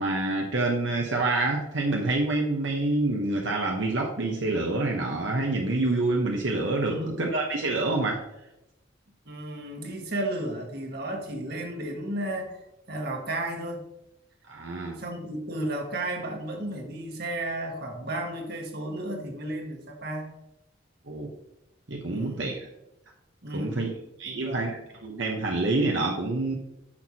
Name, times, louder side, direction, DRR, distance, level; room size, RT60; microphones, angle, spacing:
voice 1, 0.0-8.2 14.5-15.0 21.1-21.3 21.9-22.7 23.5-23.9 24.2-26.6, right 2 dB, 80° right, 0 dB, 1.1 m, -27 dB
voice 2, 6.9-7.2 9.2-12.6 12.9-13.9 15.0-20.3 22.1-22.5 23.4-23.9 24.3-24.6, right 1 dB, 55° right, 2 dB, 1.6 m, -33 dB
10.0 x 6.3 x 2.9 m, 0.89 s
head